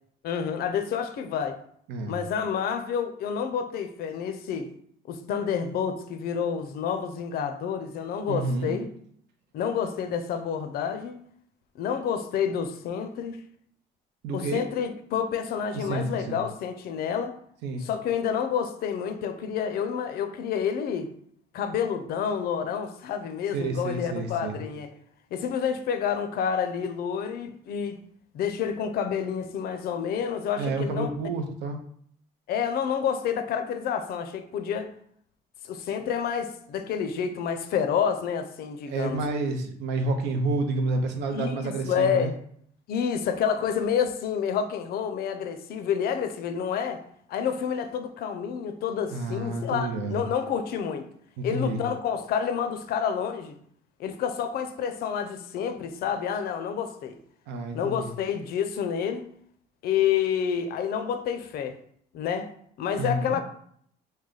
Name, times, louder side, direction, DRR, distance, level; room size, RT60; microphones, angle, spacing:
voice 1, 0.2-1.6 2.1-4.7 5.1-8.9 9.5-11.2 11.8-13.4 14.3-17.3 17.8-21.1 21.5-24.9 25.3-28.0 28.3-31.1 32.5-34.9 35.6-39.2 41.3-42.4 42.9-47.0 47.3-51.0 51.4-53.5 54.0-57.2 57.7-59.3 59.8-61.7 62.1-62.5 62.8-63.4, left 7 dB, 65° left, 0.4 m, -29 dB
voice 2, 8.3-8.8 14.2-14.6 15.7-16.4 17.6-17.9 23.5-24.6 30.6-31.8 38.9-42.3 49.1-50.2 51.4-51.8 57.5-58.1 63.0-63.4, right 2 dB, 90° right, 0.6 m, -29 dB
3.2 x 2.2 x 3.8 m
cardioid pair, 110°, 17 cm